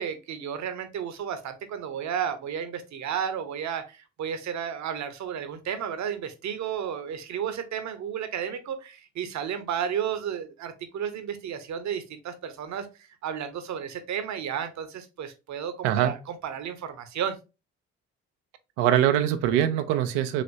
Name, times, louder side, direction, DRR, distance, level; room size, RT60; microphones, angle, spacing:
voice 1, 0.0-12.9 13.2-17.4, right 8 dB, 55° right, 0.9 m, -32 dB
voice 2, 18.8-20.4, right 11 dB, 80° right, 0.6 m, -23 dB
5.0 x 2.9 x 2.6 m
hypercardioid pair, 50°, 33 cm